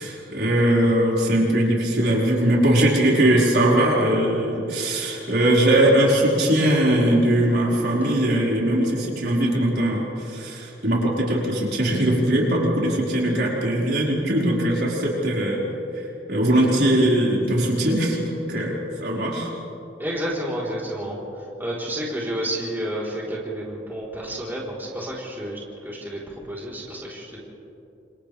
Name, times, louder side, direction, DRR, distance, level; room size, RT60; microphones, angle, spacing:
voice 1, 0.0-15.6 15.9-19.5, right 1 dB, 65° right, -4 dB, 5.1 m, -20 dB
voice 2, 20.0-21.2 21.6-27.4, right 1 dB, 10° right, -6 dB, 4.1 m, -30 dB
29.0 x 28.0 x 3.5 m, 2.9 s
head